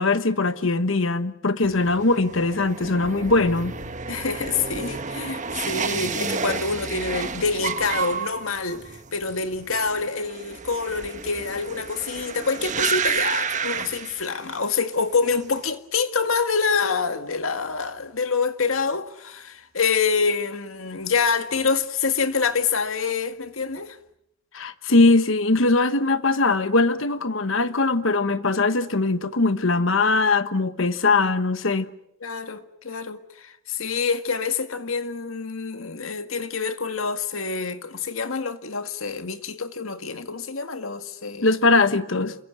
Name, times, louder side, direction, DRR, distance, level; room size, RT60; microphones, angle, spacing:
voice 1, 0.0-3.7 24.5-31.9 41.4-42.4, left 3 dB, 70° left, 1.3 m, -21 dB
sound 1, 1.6-14.7 15.0-15.6, right 5 dB, 35° right, 1.3 m, -31 dB
voice 2, 4.1-24.0 31.1-31.3 32.2-41.5, left 5 dB, 85° left, 1.9 m, -26 dB
28.0 x 23.5 x 7.9 m
head